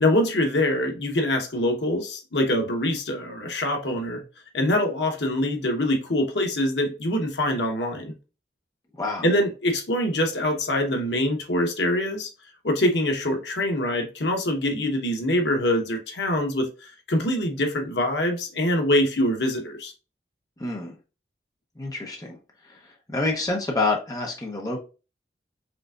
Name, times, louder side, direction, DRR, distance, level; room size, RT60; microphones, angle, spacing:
voice 1, 0.0-4.2 4.5-8.1 9.2-12.3 12.6-16.7 17.1-19.9, left 1 dB, 85° left, 4 dB, 1.0 m, -24 dB
voice 2, 20.6-20.9 21.8-22.4 22.6-24.8, left 2 dB, 20° left, 0 dB, 0.7 m, -28 dB
5.0 x 3.4 x 2.4 m, 0.32 s
head